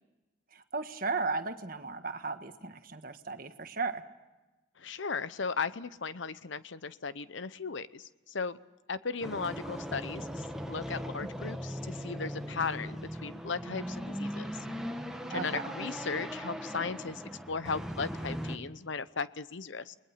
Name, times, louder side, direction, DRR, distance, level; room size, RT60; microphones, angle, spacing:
voice 1, 0.5-4.0 11.2-11.6 15.3-15.7, right 4 dB, 45° right, 8 dB, 1.4 m, -36 dB
voice 2, 4.8-8.6 8.9-14.6 15.3-19.9, left 5 dB, 70° left, 15 dB, 0.8 m, -37 dB
sound 1, 9.2-18.6, equal, 5° right, 1.3 m, -39 dB
29.0 x 20.5 x 5.8 m, 1.1 s
head